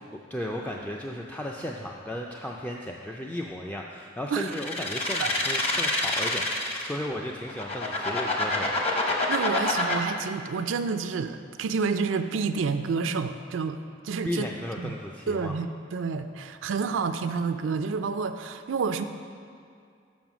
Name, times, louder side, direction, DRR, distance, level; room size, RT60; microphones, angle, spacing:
voice 1, 0.3-8.7 14.2-15.5, left 1 dB, 10° left, -1 dB, 0.3 m, -35 dB
sound 1, 4.5-7.0 7.5-9.9, left 2 dB, 35° left, 0.9 m, -26 dB
voice 2, 9.3-14.5 14.8-15.0 15.3-19.0, right 5 dB, 80° right, 9 dB, 0.4 m, -29 dB
7.2 x 5.4 x 6.1 m, 2.4 s
head